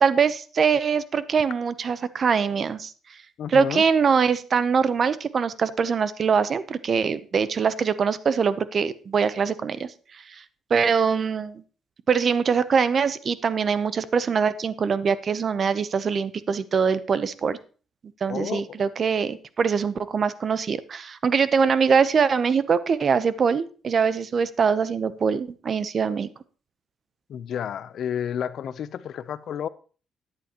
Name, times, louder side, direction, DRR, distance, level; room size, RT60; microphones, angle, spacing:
voice 1, 0.0-2.9 3.5-9.9 10.7-11.6 12.1-17.6 18.2-26.3, right 6 dB, 50° right, 0.8 m, -23 dB
voice 2, 3.4-3.8 18.3-18.7 27.3-29.7, left 9 dB, 65° left, 0.6 m, -31 dB
14.0 x 9.9 x 3.0 m
cardioid pair, 90°, 0 cm